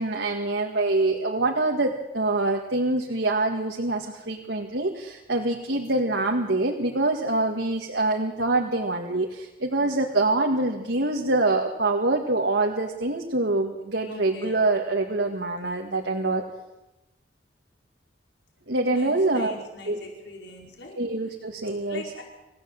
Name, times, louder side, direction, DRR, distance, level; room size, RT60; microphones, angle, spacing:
voice 1, 0.0-16.4 18.7-19.6 19.8-20.0 21.0-22.1, right 2 dB, 80° right, 1 dB, 2.0 m, -25 dB
voice 2, 14.0-14.6 18.9-21.1 21.9-22.2, left 2 dB, 85° left, 0 dB, 5.0 m, -42 dB
27.0 x 16.0 x 7.8 m, 1.0 s
head